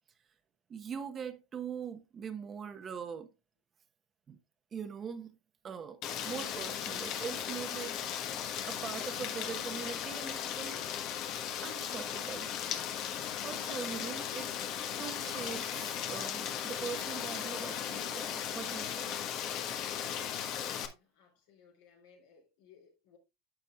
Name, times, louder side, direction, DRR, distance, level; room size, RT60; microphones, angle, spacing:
voice 1, 0.7-3.3 4.3-4.4 4.7-5.4 5.6-8.0 8.7-10.8 11.6-12.5 13.1-14.5 15.0-19.1, right 7 dB, 35° right, 1.1 m, -42 dB
Rain, 6.0-20.9, left 9 dB, 55° left, 1.3 m, -37 dB
voice 2, 20.9-23.2, left 6 dB, 75° left, 3.5 m, -62 dB
11.0 x 7.0 x 2.4 m
hypercardioid pair, 95°, 0 cm